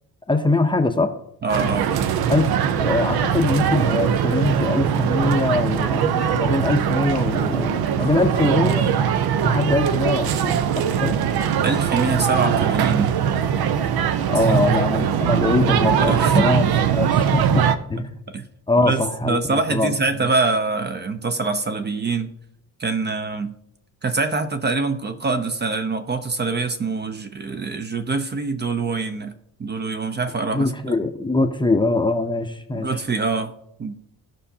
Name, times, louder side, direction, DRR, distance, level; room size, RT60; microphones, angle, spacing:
voice 1, 0.3-1.1 2.3-8.9 9.4-11.2 14.3-16.6 16.9-18.2 18.7-19.9 30.5-32.9, left 2 dB, 15° left, 6 dB, 0.6 m, -22 dB
voice 2, 1.4-2.0 11.6-13.1 14.2-14.7 16.0-16.9 18.3-18.4 18.8-22.3 22.8-23.5 24.0-29.3 29.6-30.7 32.7-33.5 33.8-33.9, right 3 dB, 30° right, 8 dB, 0.6 m, -24 dB
sound 1, 1.5-17.8, right 8 dB, 80° right, 0.7 m, -21 dB
17.0 x 5.6 x 2.8 m, 0.75 s
cardioid pair, 130°, 37 cm